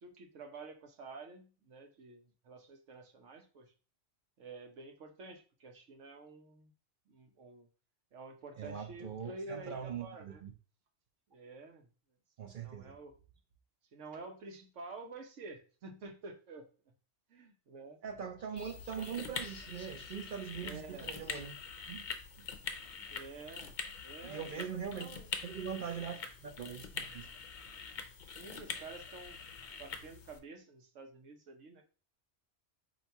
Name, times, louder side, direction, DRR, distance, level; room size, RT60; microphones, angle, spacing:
voice 1, 0.0-3.7 4.4-6.7 7.1-7.7 8.1-10.4 11.3-11.9 12.5-13.2 13.9-16.9 17.3-18.0 20.6-21.1 23.1-23.8 24.0-25.3 28.4-29.5 29.8-31.8, right 3 dB, 85° right, 5 dB, 1.2 m, -49 dB
voice 2, 8.6-10.5 12.4-12.9 18.0-21.6 21.9-22.0 22.4-22.5 24.2-25.1 25.4-27.3, right 7 dB, 55° right, 5 dB, 0.7 m, -42 dB
sound 1, 18.4-21.5 21.8-21.9 22.2-24.6, left 2 dB, 25° left, 1.1 m, -61 dB
sound 2, 18.6-30.4, left 5 dB, 50° left, 0.7 m, -44 dB
4.1 x 2.8 x 4.5 m, 0.36 s
omnidirectional pair, 1.2 m